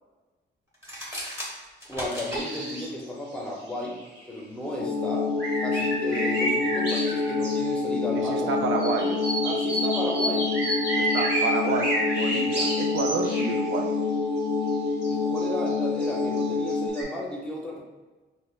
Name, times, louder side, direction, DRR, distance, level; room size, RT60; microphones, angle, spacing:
sound 1, 0.7-2.4, equal, 15° right, 1.0 m, -35 dB
voice 1, 1.9-4.0 4.3-5.3 5.6-8.6 9.4-10.6 15.1-17.8, left 1 dB, 5° left, -2 dB, 0.6 m, -34 dB
sound 2, 2.1-3.0 3.3-3.4 3.7-4.4 5.4-7.7 8.8-13.5 14.7-14.8 15.0-17.0, right 1 dB, 60° right, 1.3 m, -30 dB
sound 3, 4.8-16.9, left 4 dB, 55° left, 0.5 m, -27 dB
voice 2, 8.1-9.2 10.6-10.7 11.0-13.9, right 4 dB, 80° right, 2 dB, 0.5 m, -29 dB
5.3 x 2.1 x 2.4 m, 1.3 s
wide cardioid pair, 145°, 20 cm